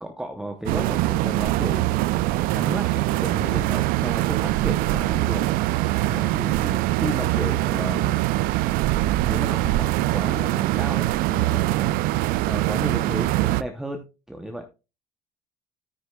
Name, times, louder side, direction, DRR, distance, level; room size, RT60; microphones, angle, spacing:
voice 1, 0.0-2.1 2.5-5.5 6.1-8.2 9.2-14.7, equal, 5° right, 5 dB, 0.7 m, -34 dB
sound 1, 0.7-13.6, right 17 dB, 75° right, 0.4 m, -23 dB
9.5 x 9.5 x 2.2 m, 0.29 s
cardioid pair, 150°, 15 cm